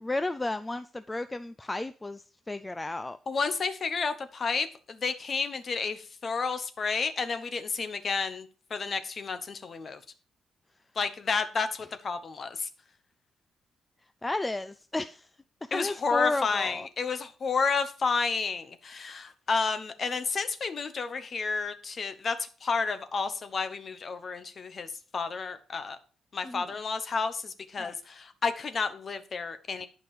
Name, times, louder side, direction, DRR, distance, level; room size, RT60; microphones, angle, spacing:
voice 1, 0.0-3.2 14.2-15.3 15.6-16.9 26.4-26.7 27.8-27.9, left 2 dB, 15° left, 0.3 m, -33 dB
voice 2, 3.3-10.0 11.0-12.7 15.7-24.9 25.1-26.0 26.3-29.9, left 4 dB, 35° left, 0.9 m, -31 dB
11.5 x 5.3 x 4.8 m
cardioid pair, 155°, 0 cm